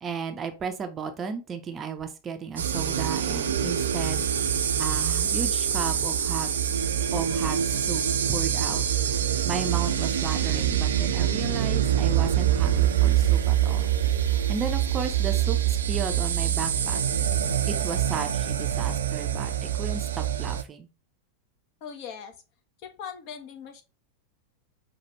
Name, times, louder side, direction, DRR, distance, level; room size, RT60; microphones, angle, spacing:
voice 1, 0.0-4.2 4.8-6.8 7.1-8.0 8.3-8.8 9.4-13.9 14.5-17.0 17.7-20.9, right 6 dB, 25° right, 6 dB, 0.6 m, -34 dB
sound 1, 2.6-20.6, right 9 dB, 65° right, 0.5 m, -25 dB
voice 2, 21.8-22.4 22.8-23.8, left 7 dB, 45° left, 6 dB, 0.8 m, -40 dB
5.6 x 2.4 x 3.0 m, 0.30 s
figure-of-eight pair, 90°, 0 cm